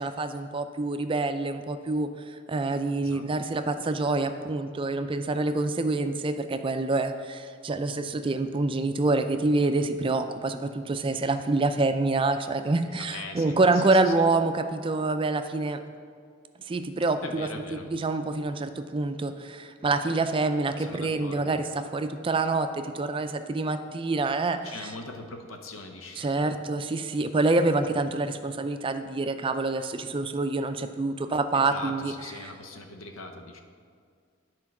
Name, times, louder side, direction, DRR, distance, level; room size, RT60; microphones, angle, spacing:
voice 1, 0.0-15.8 16.7-17.5 17.9-24.9 26.2-32.1 32.4-32.5, right 3 dB, 25° right, 9 dB, 0.4 m, -26 dB
voice 2, 12.9-14.1 17.2-17.9 20.8-21.6 24.6-26.5 31.5-33.6, left 3 dB, 80° left, 5 dB, 0.8 m, -41 dB
9.8 x 4.5 x 5.9 m, 2.1 s
head